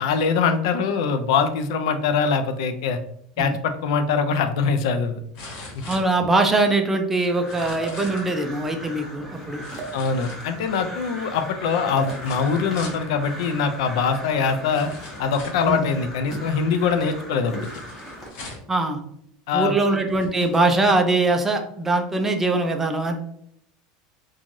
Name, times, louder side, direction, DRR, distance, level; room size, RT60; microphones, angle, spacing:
voice 1, 0.0-3.0 3.4-5.2 5.7-5.8 9.9-14.9 15.2-17.7 19.5-20.0, left 5 dB, 80° left, 8 dB, 0.4 m, -23 dB
sound 1, 4.0-4.1 5.3-6.6 7.4-8.3 9.6-10.8 12.0-13.1 14.0-14.1 14.7-15.7 17.6-18.8 19.6-19.7 20.1-20.7 21.2-21.3, left 2 dB, 60° left, 1.0 m, -41 dB
sound 2, 4.1-4.2 5.2-5.3 5.6-5.7 7.8-8.2 9.0-9.2 9.7-10.4 11.9-12.3 13.4-15.0 15.6-16.0 16.3-16.6 17.3-17.7 18.7-18.9, right 4 dB, 55° right, 0.6 m, -39 dB
voice 2, 5.9-9.6 15.6-15.8 18.7-19.0 19.5-23.2, right 2 dB, 10° right, 5 dB, 0.3 m, -22 dB
Crow, 7.2-18.3, equal, 5° left, 0.8 m, -38 dB
3.1 x 2.3 x 2.5 m, 0.70 s
supercardioid pair, 155°, 3 cm